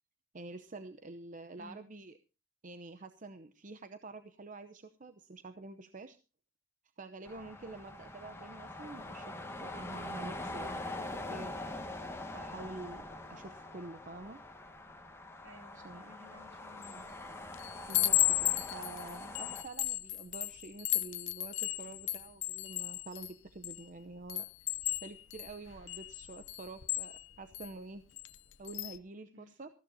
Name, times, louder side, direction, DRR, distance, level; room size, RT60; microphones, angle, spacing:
voice 1, 0.3-2.2 2.6-6.2 7.0-11.5 12.3-14.4 15.7-16.1 17.9-24.7 25.0-28.0 28.6-29.7, right 3 dB, 40° right, 9 dB, 0.8 m, -48 dB
sound 1, 7.2-19.6, left 2 dB, 15° left, 1.8 m, -44 dB
voice 2, 15.4-17.1 29.3-29.5, left 1 dB, 70° right, 5 dB, 3.2 m, -56 dB
Chime, 16.8-17.1 17.5-23.8 24.3-27.7 28.2-28.4 28.6-29.0, left 17 dB, 70° left, 0.7 m, -34 dB
19.5 x 15.0 x 2.8 m, 0.31 s
head